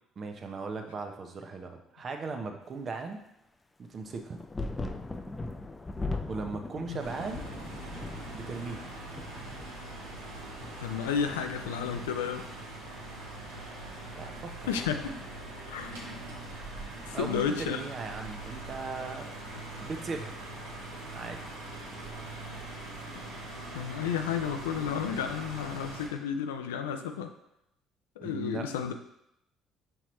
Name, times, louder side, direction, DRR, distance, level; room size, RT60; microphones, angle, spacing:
voice 1, 0.2-3.2 3.9-4.4 6.3-7.5 8.3-8.9 14.1-14.7 17.1-20.3 21.1-21.4 28.2-28.7, right 4 dB, 45° right, 5 dB, 0.7 m, -38 dB
sound 1, 4.0-13.0 13.3-14.2 15.1-15.2, left 2 dB, 20° left, 0.4 m, -40 dB
sound 2, 7.0-26.1, right 2 dB, 85° right, 1.0 m, -42 dB
voice 2, 10.8-12.5 14.7-15.3 15.7-16.0 17.1-17.8 23.1-23.2 23.7-27.3 28.2-28.9, left 7 dB, 90° left, 6 dB, 0.3 m, -32 dB
5.6 x 3.0 x 3.1 m, 0.79 s
hypercardioid pair, 60°, 0 cm